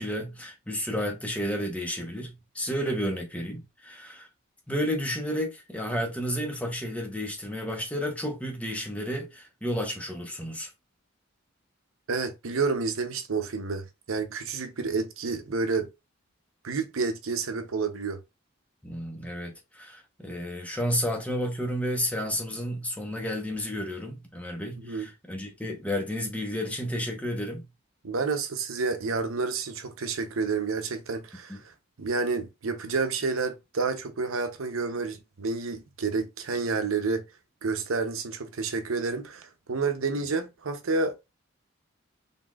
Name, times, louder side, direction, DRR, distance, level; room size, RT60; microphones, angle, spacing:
voice 1, 0.0-4.3 4.7-10.7 18.8-27.6 31.5-31.6, equal, 5° left, 0.9 m, -31 dB
voice 2, 12.1-15.9 16.6-18.2 24.8-25.1 28.0-31.6 32.0-37.2 37.6-41.2, right 4 dB, 85° right, 0.7 m, -29 dB
4.1 x 3.6 x 2.3 m
head